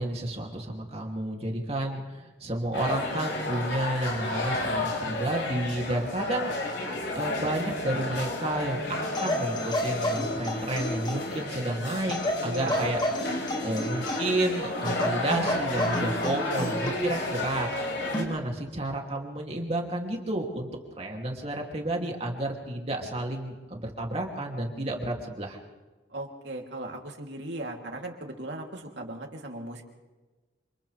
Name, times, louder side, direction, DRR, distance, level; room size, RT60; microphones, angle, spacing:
voice 1, 0.0-6.8 7.1-13.0 13.6-20.7 21.0-25.6, right 1 dB, 35° right, 1 dB, 2.8 m, -31 dB
sound 1, 2.7-18.2, left 2 dB, 85° left, 5.4 m, -32 dB
sound 2, 9.1-11.4 12.1-14.4 14.8-17.0 18.1-18.4, left 1 dB, 25° left, 2.0 m, -31 dB
voice 2, 12.4-13.0 26.1-29.8, right 2 dB, 70° right, 1 dB, 3.2 m, -37 dB
28.0 x 27.5 x 3.5 m, 1.2 s
head